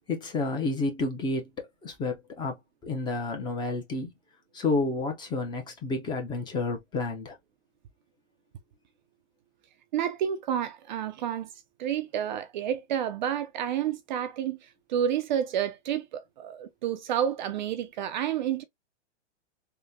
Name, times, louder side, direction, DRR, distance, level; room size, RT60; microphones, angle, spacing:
voice 1, 0.1-4.1 4.5-7.4, left 3 dB, 15° left, 0.5 m, -30 dB
voice 2, 9.9-11.5 11.8-14.6 14.9-18.6, right 9 dB, 40° right, 0.4 m, -30 dB
3.6 x 2.1 x 2.6 m
hypercardioid pair, 140°, 36 cm